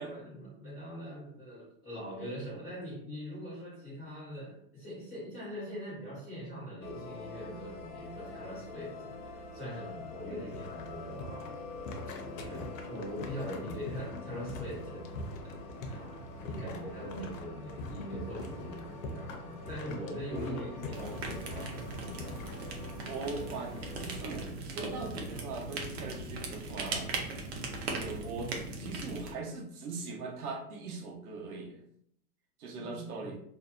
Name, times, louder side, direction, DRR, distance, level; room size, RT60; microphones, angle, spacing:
voice 1, 0.0-11.5 12.2-21.8 22.5-22.7 32.7-33.3, equal, 10° left, -12 dB, 0.4 m, -42 dB
sound 1, 6.8-24.4, left 3 dB, 85° left, 0.9 m, -46 dB
sound 2, 10.5-22.9, left 2 dB, 60° left, 0.6 m, -44 dB
voice 2, 20.3-20.8 23.1-27.1 27.9-31.8 32.6-33.4, right 4 dB, 70° right, 2 dB, 0.8 m, -41 dB
sound 3, 20.9-29.3, right 2 dB, 45° right, 0.5 m, -39 dB
2.6 x 2.1 x 2.4 m, 0.70 s
hypercardioid pair, 155°, 46 cm